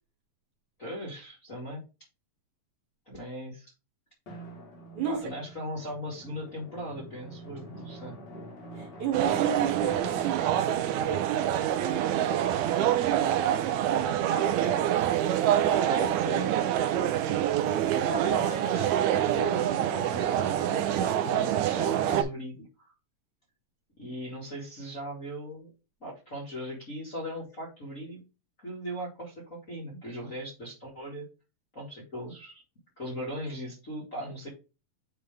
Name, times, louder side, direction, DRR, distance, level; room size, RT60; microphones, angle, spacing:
voice 1, 0.8-1.8 3.1-3.7 4.9-8.2 15.7-16.6 18.1-18.9 19.3-22.9 24.0-25.7 26.0-28.2 28.6-31.3 31.7-32.6 33.0-34.5, equal, 30° left, -6 dB, 1.8 m, -39 dB
Drum, 4.3-12.5, right 1 dB, 45° left, 1.4 m, -46 dB
voice 2, 8.8-14.8 15.9-18.3, right 7 dB, 65° right, 1 dB, 2.7 m, -35 dB
sound 1, 9.1-22.2, right 11 dB, 85° right, 1.6 m, -26 dB
9.1 x 3.2 x 3.3 m, 0.29 s
omnidirectional pair, 4.0 m